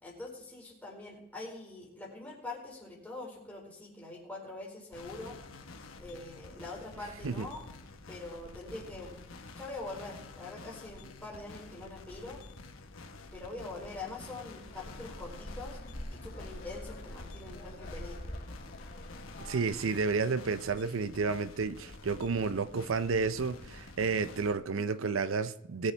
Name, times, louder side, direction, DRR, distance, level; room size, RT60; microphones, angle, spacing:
voice 1, 0.0-5.4 6.0-7.6 8.1-9.2 9.6-12.4 13.3-15.8 16.1-18.2 24.7-24.8, left 2 dB, 10° left, -4 dB, 4.7 m, -44 dB
sound 1, 4.9-24.5, left 3 dB, 90° left, 1.1 m, -49 dB
sound 2, 14.6-19.7, left 1 dB, 55° left, 2.3 m, -45 dB
voice 2, 19.4-25.9, right 4 dB, 85° right, 13 dB, 0.6 m, -31 dB
20.5 x 8.7 x 3.3 m, 0.85 s
head